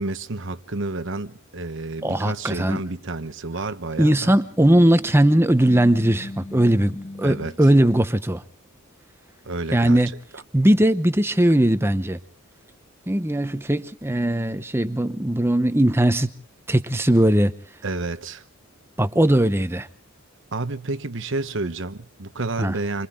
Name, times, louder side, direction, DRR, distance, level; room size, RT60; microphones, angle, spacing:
voice 1, 0.0-4.4 7.2-7.5 9.4-10.0 10.3-10.4 17.8-18.4 20.5-23.1, right 3 dB, 60° right, 1.1 m, -30 dB
voice 2, 2.0-2.8 4.0-8.4 9.7-10.1 10.5-12.2 13.1-16.3 16.7-17.5 19.0-19.9 22.6-22.7, right 1 dB, 10° right, 0.9 m, -19 dB
sound 1, 4.3-7.6, left 1 dB, 30° left, 1.4 m, -38 dB
28.5 x 25.0 x 3.7 m
head